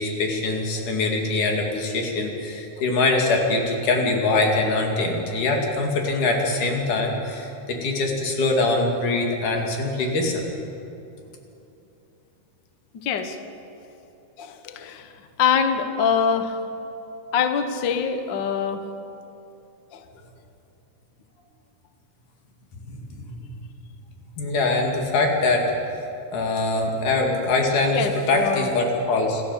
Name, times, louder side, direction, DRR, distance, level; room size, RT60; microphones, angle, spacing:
voice 1, 0.0-10.4 22.8-23.5 24.4-25.7 26.3-29.4, left 2 dB, 80° left, 1 dB, 3.9 m, -23 dB
voice 2, 12.9-13.4 14.4-15.1 15.4-16.6 17.3-18.8 19.9-20.0 27.9-28.7, left 7 dB, 55° left, 7 dB, 1.3 m, -24 dB
27.0 x 13.5 x 7.3 m, 2.8 s
omnidirectional pair, 3.6 m